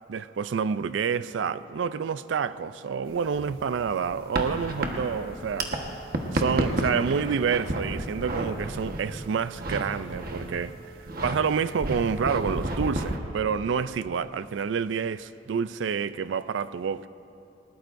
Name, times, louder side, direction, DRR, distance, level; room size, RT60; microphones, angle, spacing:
voice 1, 0.1-5.7 6.3-10.8 11.2-17.1, right 6 dB, 75° right, 0.4 m, -28 dB
sound 1, 3.1-5.8 6.0-9.8 10.1-10.6 11.0-11.4 11.8-13.2, right 1 dB, 55° right, 1.3 m, -31 dB
Telephone, 5.2-13.5, right 5 dB, 5° left, 3.2 m, -50 dB
21.0 x 19.5 x 2.6 m
head